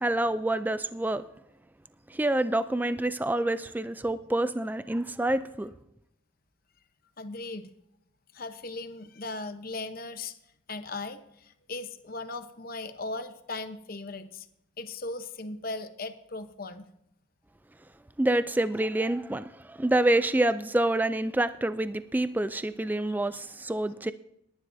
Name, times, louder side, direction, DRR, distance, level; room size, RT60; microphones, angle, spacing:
voice 1, 0.0-1.3 2.1-5.7 18.2-24.1, right 1 dB, 10° right, 13 dB, 0.3 m, -27 dB
voice 2, 7.2-7.7 8.3-10.3 10.7-14.5 14.8-16.8, left 2 dB, 45° left, 10 dB, 0.9 m, -38 dB
19.5 x 10.5 x 2.7 m, 0.79 s
head